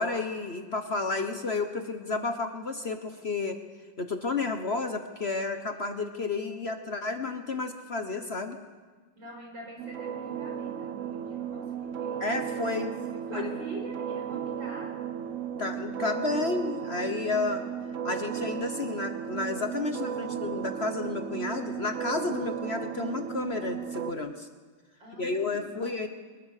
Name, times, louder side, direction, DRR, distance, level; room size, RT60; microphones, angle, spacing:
voice 1, 0.0-3.6 4.0-8.6 12.2-12.9 13.3-13.5 15.6-17.6 18.0-24.5 25.2-26.1, left 3 dB, 40° left, 6 dB, 1.2 m, -31 dB
voice 2, 9.2-12.3 12.7-14.9 25.0-26.1, right 1 dB, 80° right, -1 dB, 6.1 m, -45 dB
sound 1, 9.8-24.1, right 9 dB, 55° right, 1.0 m, -35 dB
23.5 x 20.5 x 6.6 m, 1.4 s
omnidirectional pair, 2.0 m